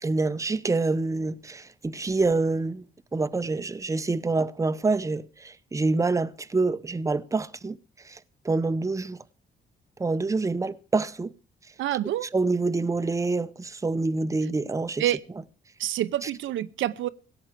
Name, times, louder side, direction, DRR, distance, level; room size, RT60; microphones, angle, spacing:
voice 1, 0.0-2.8 3.1-7.8 8.0-8.2 8.4-9.2 10.0-11.3 12.3-15.0 16.2-16.3, right 3 dB, 15° right, 0.7 m, -26 dB
voice 2, 11.8-12.3 15.0-15.2 15.8-17.1, right 13 dB, 75° right, 0.7 m, -27 dB
16.5 x 7.9 x 7.4 m
cardioid pair, 90°, 20 cm